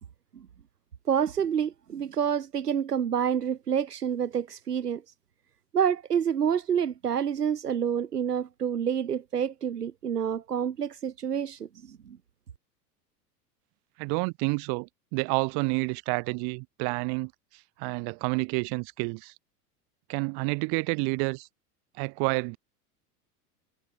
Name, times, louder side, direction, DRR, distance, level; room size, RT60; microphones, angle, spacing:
voice 1, 1.1-5.0 5.7-12.2, right 8 dB, 90° right, 1.4 m, -28 dB
voice 2, 14.0-17.3 17.8-19.3 20.1-21.5 22.0-22.6, right 36 dB, 55° right, 2.6 m, -29 dB
hypercardioid pair, 85°, 46 cm